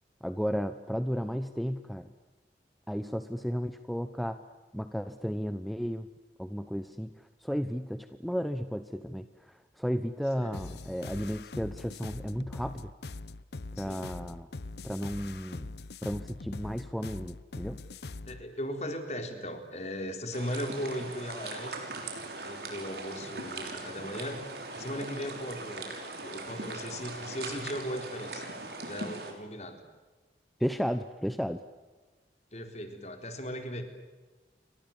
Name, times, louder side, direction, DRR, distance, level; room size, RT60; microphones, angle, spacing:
voice 1, 0.2-2.1 2.9-4.4 4.7-6.1 6.4-12.8 13.8-14.5 14.8-15.7 16.0-17.8 30.6-31.6, equal, ahead, 9 dB, 0.9 m, -34 dB
sound 1, 10.5-18.4, left 3 dB, 70° left, 0.8 m, -42 dB
voice 2, 13.8-14.1 18.3-21.9 22.4-24.4 24.8-25.9 26.2-28.5 28.8-29.8 32.5-33.8, equal, 40° left, 6 dB, 4.1 m, -37 dB
sound 2, 20.3-29.3, right 3 dB, 65° right, 6.1 m, -40 dB
30.0 x 24.5 x 7.3 m, 1.3 s
head